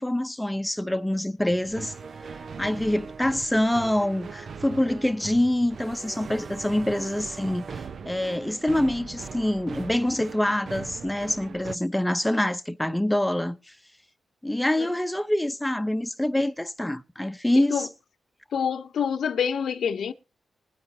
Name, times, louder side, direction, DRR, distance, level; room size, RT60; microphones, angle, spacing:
voice 1, 0.0-1.9 2.6-13.7 14.4-17.9, left 1 dB, 5° left, 0.8 m, -25 dB
sound 1, 1.5-11.8, right 5 dB, 60° right, 0.6 m, -40 dB
voice 2, 18.5-20.1, left 7 dB, 80° left, 0.8 m, -26 dB
20.5 x 9.5 x 2.8 m
cardioid pair, 90°, 0 cm